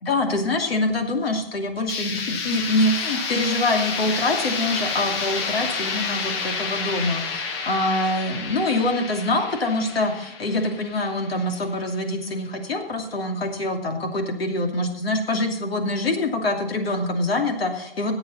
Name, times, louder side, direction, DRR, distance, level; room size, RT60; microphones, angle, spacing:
voice 1, 0.0-18.1, left 2 dB, 90° left, 3 dB, 2.7 m, -25 dB
sound 1, 1.9-11.7, left 4 dB, 25° left, 1.1 m, -29 dB
18.5 x 7.9 x 4.1 m, 0.79 s
hypercardioid pair, 160°, 29 cm